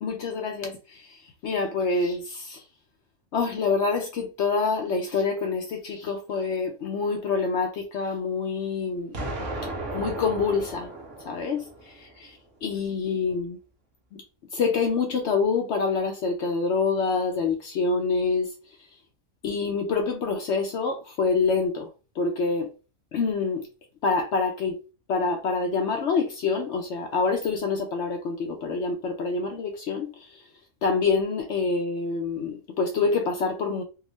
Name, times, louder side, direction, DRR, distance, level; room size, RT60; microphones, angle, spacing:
voice 1, 0.0-2.6 3.3-9.2 9.9-10.9 11.2-13.6 14.1-14.2 14.5-18.5 19.4-22.7 23.1-23.7 24.0-24.8 25.1-30.5 30.8-33.8, left 4 dB, 65° left, 0.8 m, -26 dB
Explosion, 9.1-12.1, right 2 dB, 65° right, 1.2 m, -35 dB
3.6 x 2.3 x 3.0 m
omnidirectional pair, 1.4 m